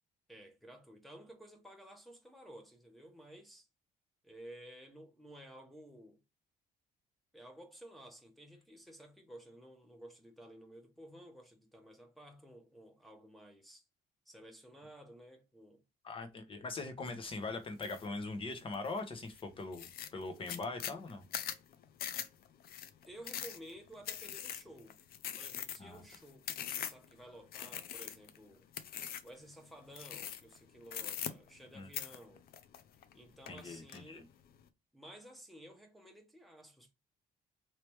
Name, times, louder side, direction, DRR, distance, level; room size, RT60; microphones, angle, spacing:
voice 1, 0.3-3.7 4.2-6.2 7.3-13.8 14.3-15.8 23.1-25.0 25.3-28.7 29.2-32.4 33.1-34.3 34.9-36.9, right 1 dB, ahead, 1.1 m, -54 dB
voice 2, 16.0-21.2 25.8-26.0 31.7-31.9 33.5-34.2, left 3 dB, 30° left, 1.0 m, -41 dB
sound 1, 17.8-18.1 18.5-19.0 19.4-19.5 19.7-27.1 27.5-28.4 28.7-29.4 29.9-30.6 30.9-31.7 31.9-33.1 33.5-34.0, left 9 dB, 60° left, 0.6 m, -42 dB
3.3 x 2.9 x 3.1 m
cardioid pair, 110°, 17 cm